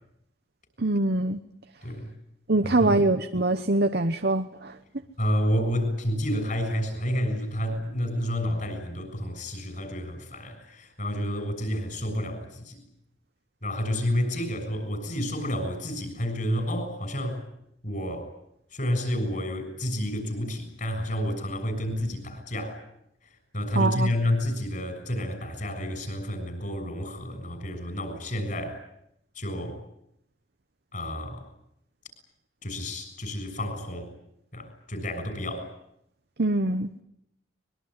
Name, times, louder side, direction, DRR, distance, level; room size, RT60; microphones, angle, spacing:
voice 1, 0.8-1.4 2.5-4.8 23.7-24.1 36.4-36.9, right 2 dB, 50° right, 8 dB, 1.0 m, -23 dB
voice 2, 1.8-2.1 2.6-3.0 5.2-12.8 13.6-17.4 17.8-18.3 18.7-22.8 23.5-28.8 29.3-29.8 30.9-31.4 32.6-34.1 34.5-35.7, equal, 40° left, 8 dB, 6.9 m, -30 dB
24.0 x 22.5 x 9.8 m, 0.76 s
head